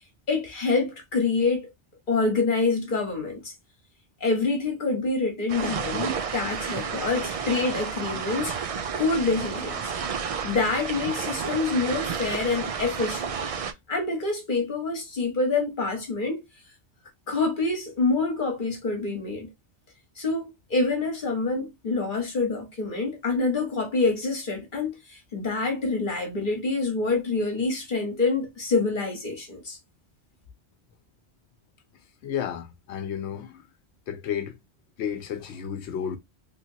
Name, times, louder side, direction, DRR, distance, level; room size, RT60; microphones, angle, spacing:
voice 1, 0.3-1.7 2.1-3.5 4.2-8.5 9.0-9.9 10.4-13.4 13.9-16.5 17.3-19.5 20.2-29.8, left 3 dB, 50° left, 1.3 m, -26 dB
sound 1, 5.5-13.7, right 6 dB, 65° right, 0.3 m, -31 dB
voice 2, 32.2-33.7 34.1-34.6 35.0-36.2, left 8 dB, 80° left, 0.9 m, -32 dB
3.3 x 2.9 x 2.7 m
omnidirectional pair, 1.1 m